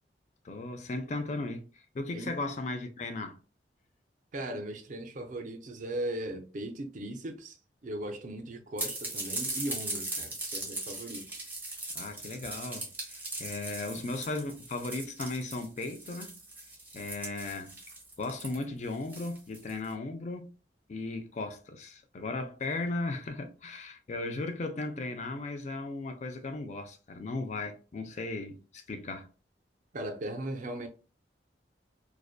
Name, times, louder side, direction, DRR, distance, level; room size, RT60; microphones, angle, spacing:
voice 1, 0.4-3.4 11.9-16.4 16.9-17.8 18.2-20.5 20.9-29.3, left 2 dB, 40° left, 0.4 m, -36 dB
voice 2, 4.3-7.6 7.8-11.4 29.9-30.9, right 1 dB, 45° right, 0.4 m, -38 dB
sound 1, 8.8-19.8, right 2 dB, 10° right, 0.6 m, -39 dB
2.5 x 2.2 x 2.3 m
head